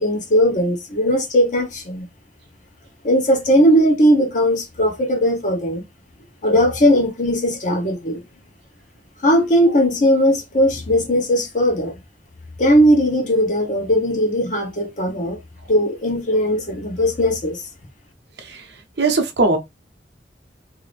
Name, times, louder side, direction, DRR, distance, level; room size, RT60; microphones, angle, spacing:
voice 1, 0.0-2.1 3.0-5.8 6.4-8.2 9.2-11.9 12.6-15.4 15.7-17.6, equal, 45° left, 1.0 m, -18 dB
voice 2, 19.0-19.6, right 3 dB, 70° right, 0.7 m, -19 dB
2.7 x 2.5 x 3.3 m
head